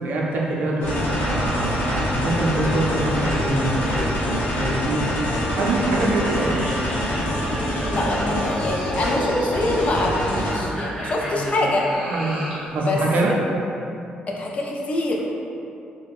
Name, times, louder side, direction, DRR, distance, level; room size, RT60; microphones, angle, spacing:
voice 1, 0.0-4.1 4.6-5.0 5.5-6.7 11.2-11.5 12.0-12.4 12.7-13.3, right 2 dB, 65° right, -3 dB, 0.4 m, -24 dB
sound 1, 0.8-10.7, equal, 90° left, 0.6 m, -25 dB
sound 2, 6.1-12.7, right 1 dB, 20° right, 1.1 m, -32 dB
voice 2, 7.8-11.9 12.9-13.0 14.3-15.2, left 2 dB, 40° left, -1 dB, 0.4 m, -25 dB
3.4 x 2.1 x 2.4 m, 2.7 s
cardioid pair, 125°, 3 cm